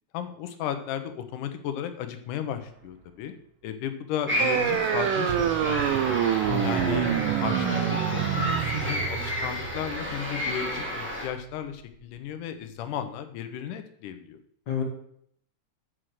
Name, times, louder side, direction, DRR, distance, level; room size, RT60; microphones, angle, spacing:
voice 1, 0.1-3.3 3.6-6.2 6.6-7.1 7.4-8.2 8.5-14.4, left 9 dB, 85° left, 8 dB, 2.4 m, -35 dB
sound 1, 2.6-3.1 5.3-7.9, right 10 dB, 70° right, 2.1 m, -39 dB
sound 2, 4.3-11.3, equal, 5° right, 2.1 m, -31 dB
sound 3, 4.4-11.4, right 11 dB, 90° right, 2.2 m, -27 dB
voice 2, 6.5-7.3 14.7-14.8, left 3 dB, 40° left, 1 dB, 1.9 m, -30 dB
7.5 x 6.4 x 6.3 m, 0.67 s
omnidirectional pair, 3.6 m